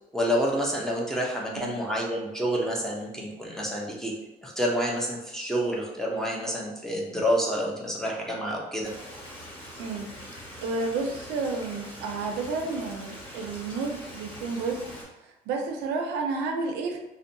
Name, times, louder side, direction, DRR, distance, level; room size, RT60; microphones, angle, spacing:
voice 1, 0.1-4.1 4.4-8.9, equal, 5° left, -3 dB, 0.5 m, -28 dB
voice 2, 1.5-1.8 9.8-10.1 10.6-14.8 15.2-17.0, right 3 dB, 85° right, 3 dB, 0.5 m, -31 dB
Stream, 8.8-15.1, equal, 35° left, 1.5 m, -43 dB
2.6 x 2.2 x 2.6 m, 0.97 s
cardioid pair, 110°, 17 cm